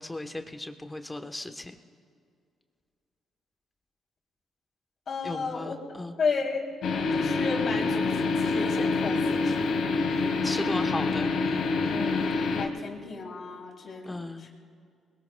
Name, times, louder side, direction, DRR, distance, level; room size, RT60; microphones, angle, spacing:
voice 1, 0.0-1.7 5.2-6.2 10.4-11.3 14.0-14.6, left 1 dB, 15° left, 6 dB, 1.0 m, -36 dB
voice 2, 5.1-5.8 6.2-6.7 7.1-10.0 11.9-14.5, left 4 dB, 55° left, 0 dB, 3.1 m, -33 dB
sound 1, 6.8-12.7, left 3 dB, 75° left, 1.8 m, -26 dB
29.5 x 21.0 x 2.3 m, 2.2 s
cardioid pair, 90°, 0 cm